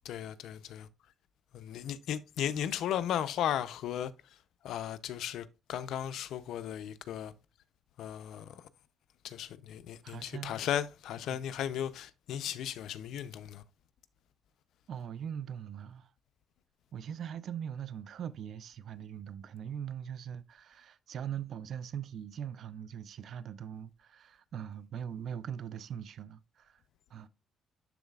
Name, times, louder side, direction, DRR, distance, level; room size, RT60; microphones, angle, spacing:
voice 1, 0.0-0.9 1.5-4.1 4.6-7.3 8.0-8.5 9.2-13.6, left 10 dB, 80° left, 0.5 m, -36 dB
voice 2, 10.0-10.6 11.3-11.4 14.9-16.1 16.9-26.8 27.1-27.3, right 8 dB, 65° right, 0.5 m, -41 dB
12.0 x 4.0 x 2.3 m
cardioid pair, 90°, 0 cm